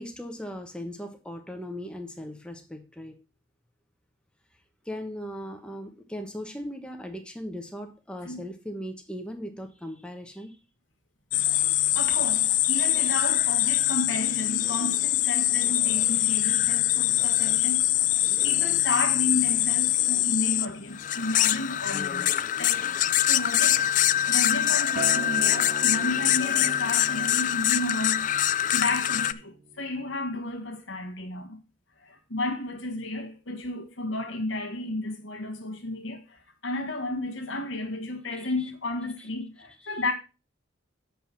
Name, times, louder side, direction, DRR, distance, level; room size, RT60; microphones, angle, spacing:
voice 1, 0.0-3.2 4.8-10.6 16.3-16.7 38.6-38.7 39.2-39.3 39.8-39.9, equal, 5° left, 1.1 m, -38 dB
sound 1, 11.3-29.3, left 13 dB, 40° left, 0.3 m, -24 dB
voice 2, 11.9-17.8 18.1-22.3 22.6-23.8 24.3-28.3 28.7-31.6 32.0-40.1, left 2 dB, 75° left, 1.4 m, -32 dB
Acoustic guitar, 25.0-30.2, right 5 dB, 35° right, 0.3 m, -41 dB
7.7 x 5.4 x 5.7 m
head